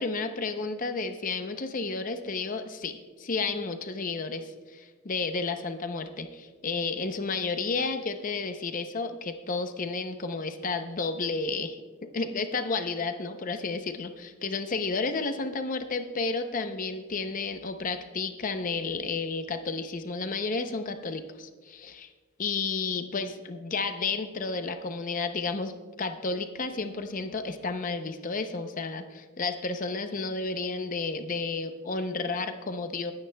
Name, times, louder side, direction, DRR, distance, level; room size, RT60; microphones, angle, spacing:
voice 1, 0.0-11.8 12.1-22.1 22.4-25.7 26.0-33.1, left 4 dB, 35° left, 8 dB, 0.6 m, -32 dB
21.0 x 9.7 x 2.2 m, 1.4 s
head